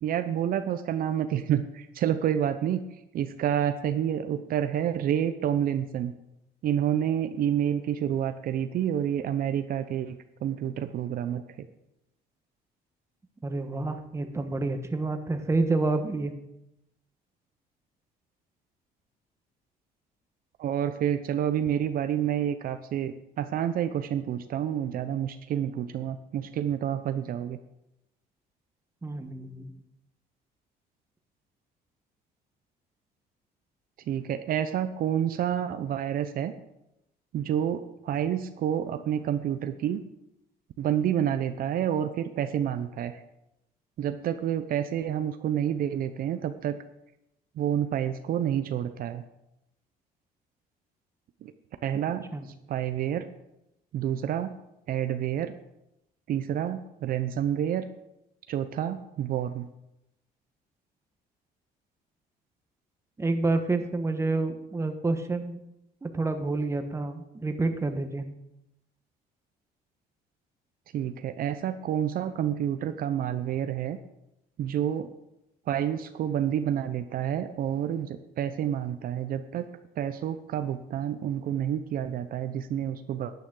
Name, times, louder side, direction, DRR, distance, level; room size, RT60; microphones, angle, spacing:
voice 1, 0.0-2.8 3.1-6.1 6.6-11.4 20.6-27.6 34.1-36.5 37.3-40.0 40.8-43.2 44.0-46.8 47.6-49.2 51.4-51.5 51.8-52.3 52.7-53.3 53.9-54.5 54.9-55.5 56.3-57.9 58.5-59.7 70.9-74.0 74.6-75.1 75.7-79.7 80.0-83.3, right 10 dB, 60° right, 10 dB, 0.6 m, -29 dB
voice 2, 13.4-16.3 29.0-29.7 52.3-52.5 63.2-65.6 66.0-68.2, right 3 dB, 15° right, 7 dB, 1.1 m, -28 dB
12.0 x 9.2 x 3.8 m, 0.87 s
cardioid pair, 110°, 17 cm